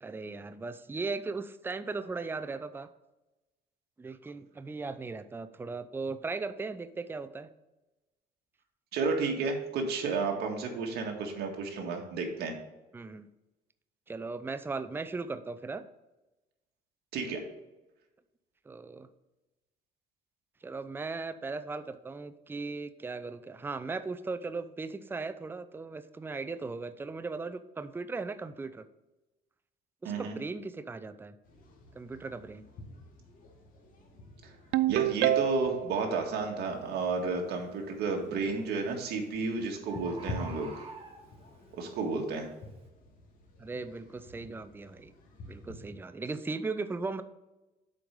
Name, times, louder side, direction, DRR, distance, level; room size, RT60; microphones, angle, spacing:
voice 1, 0.0-2.9 4.0-7.5 12.9-13.3 14.1-15.8 18.7-19.1 20.6-28.8 30.0-31.4 31.9-32.6 43.6-45.1 45.4-47.2, right 3 dB, 10° right, 11 dB, 0.5 m, -37 dB
voice 2, 8.9-12.5 17.1-17.4 30.0-30.4 34.4-34.5 34.9-40.7 41.7-42.5, right 4 dB, 75° right, 2 dB, 1.8 m, -32 dB
sound 1, 31.4-45.8, left 2 dB, 55° left, 1.9 m, -49 dB
Ringtone, 34.7-35.9, right 14 dB, 90° right, 0.4 m, -26 dB
Bird, 36.6-36.8 37.4-37.8 38.9-39.0 39.2-39.3 39.5-39.6 39.9-41.6 42.2-42.3, right 4 dB, 35° right, 1.9 m, -46 dB
7.6 x 4.7 x 5.3 m, 1.0 s
cardioid pair, 110°, 17 cm